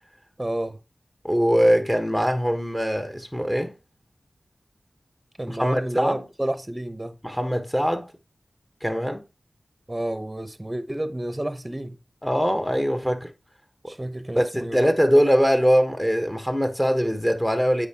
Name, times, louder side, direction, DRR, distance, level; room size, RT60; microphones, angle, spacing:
voice 1, 0.4-0.8 5.4-7.2 9.9-12.0 13.9-14.9, right 1 dB, 20° right, 0.9 m, -30 dB
voice 2, 1.2-3.7 5.5-6.2 7.2-8.1 8.8-9.2 12.2-13.3 14.4-17.9, equal, 10° left, 1.1 m, -22 dB
8.1 x 5.0 x 2.9 m
cardioid pair, 40°, 0 cm